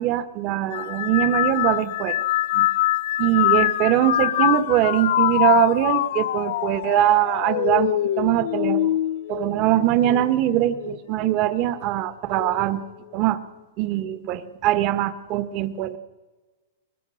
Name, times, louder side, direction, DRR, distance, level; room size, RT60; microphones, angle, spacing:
voice 1, 0.0-2.2 2.5-2.7 3.2-9.0 9.3-12.8 13.1-13.4 13.8-16.0, right 13 dB, 35° right, 13 dB, 1.3 m, -22 dB
sound 1, 0.7-10.3 10.8-11.3 12.3-12.7, left 14 dB, 60° left, 0.6 m, -24 dB
24.0 x 19.5 x 6.4 m, 1.2 s
hypercardioid pair, 155°, 0 cm